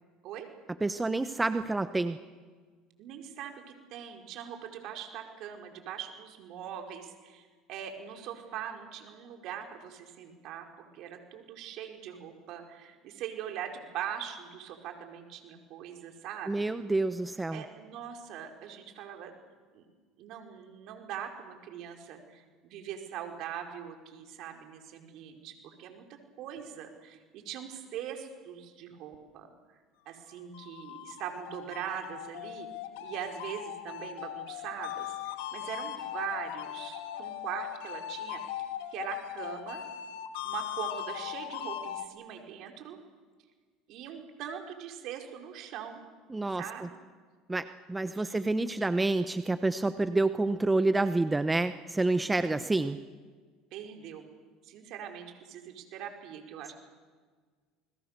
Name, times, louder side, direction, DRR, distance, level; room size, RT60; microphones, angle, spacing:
voice 1, 0.8-2.2 16.5-17.6 46.3-46.9 47.5-53.0, right 2 dB, 15° right, 11 dB, 0.9 m, -28 dB
voice 2, 3.0-16.7 17.5-19.3 19.7-19.9 20.2-26.0 26.4-29.5 30.0-32.7 33.0-38.4 38.9-39.8 40.4-43.0 43.9-46.0 46.6-47.0 48.1-48.5 52.4-52.6 53.7-54.3 54.6-56.7, right 9 dB, 60° right, 3 dB, 4.7 m, -41 dB
sound 1, 30.3-42.1, left 11 dB, 80° left, 2.0 m, -39 dB
29.0 x 21.5 x 6.7 m, 1.5 s
supercardioid pair, 95°, 0 cm